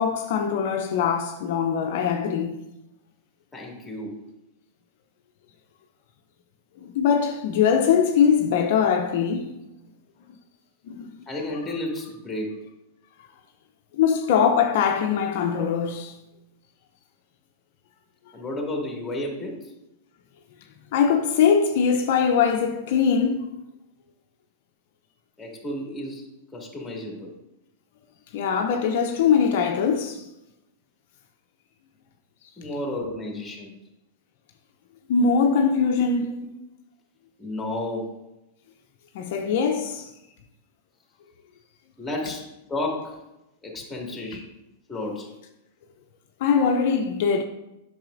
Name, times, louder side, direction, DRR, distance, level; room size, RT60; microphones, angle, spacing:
voice 1, 0.0-2.6 6.8-9.6 10.9-11.1 14.0-16.1 20.9-23.5 28.3-30.3 35.1-36.3 39.1-40.1 46.4-47.4, left 6 dB, 60° left, 0.6 m, -22 dB
voice 2, 3.5-4.2 11.3-12.6 18.3-19.7 25.4-26.3 26.5-27.3 32.6-33.8 36.2-36.4 37.4-38.1 42.0-43.2 43.6-44.5 44.9-45.3, left 1 dB, 10° left, 2.1 m, -32 dB
8.7 x 6.2 x 2.6 m
hypercardioid pair, 105°, 0 cm